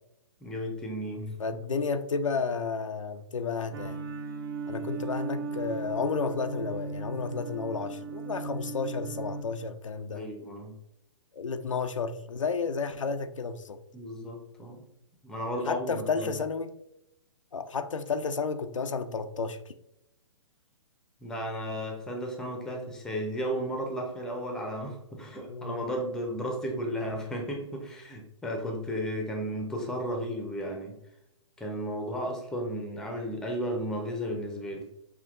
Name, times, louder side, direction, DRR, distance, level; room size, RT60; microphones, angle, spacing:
voice 1, 0.4-1.4 10.1-10.8 13.9-14.8 15.2-16.4 21.2-31.0 31.6-34.9, equal, 5° left, 0.7 m, -34 dB
voice 2, 1.4-4.0 4.7-10.2 11.3-13.8 15.7-16.7 17.5-19.7 25.5-25.8, left 5 dB, 90° left, 0.4 m, -32 dB
sound 1, 3.7-9.4, right 4 dB, 50° right, 0.7 m, -37 dB
5.7 x 2.8 x 2.4 m
hypercardioid pair, 130°, 16 cm